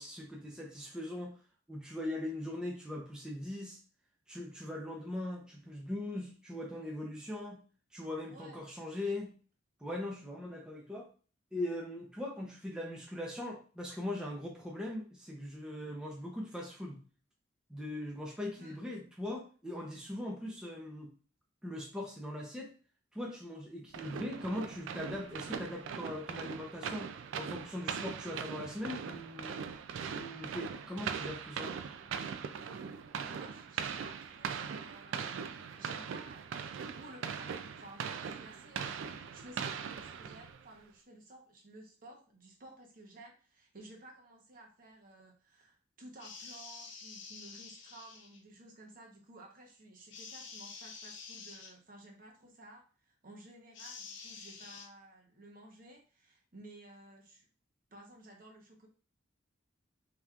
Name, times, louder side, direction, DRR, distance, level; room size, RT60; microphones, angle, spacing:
voice 1, 0.0-1.3 1.7-3.8 4.3-7.6 7.9-9.3 9.8-11.1 11.5-17.0 17.7-21.1 21.6-22.7 23.1-27.1 27.4-29.6 30.1-31.7, left 1 dB, 5° right, -2 dB, 0.6 m, -40 dB
voice 2, 8.3-8.6 18.6-18.8 33.2-35.3 35.7-36.5 37.0-57.5 57.9-58.9, right 1 dB, 45° right, 1 dB, 1.0 m, -54 dB
sound 1, 23.9-40.7, right 6 dB, 80° right, 0.3 m, -40 dB
sound 2, 46.2-48.4 50.1-51.7 53.7-54.9, left 5 dB, 70° left, 0.6 m, -48 dB
5.3 x 2.9 x 2.4 m, 0.39 s
head